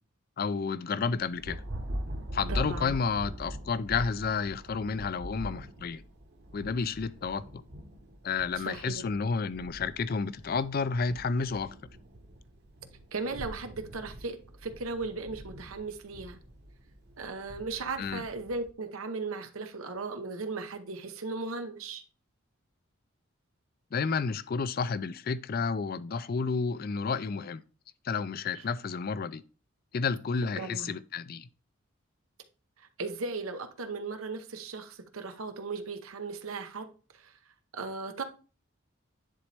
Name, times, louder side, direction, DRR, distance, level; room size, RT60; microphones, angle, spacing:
voice 1, 0.4-1.6 2.3-6.0 6.5-7.6 8.2-11.7 18.0-18.2 23.9-27.6 28.0-29.4 29.9-31.5, left 5 dB, 45° left, 0.4 m, -31 dB
Thunder, 1.2-18.7, equal, 50° right, 1.1 m, -42 dB
voice 2, 2.5-2.9 8.6-9.1 13.1-16.4 17.2-22.0 28.5-28.6 30.6-30.9 32.8-37.3 37.7-38.2, right 3 dB, 85° right, 0.9 m, -37 dB
10.0 x 4.1 x 3.3 m
head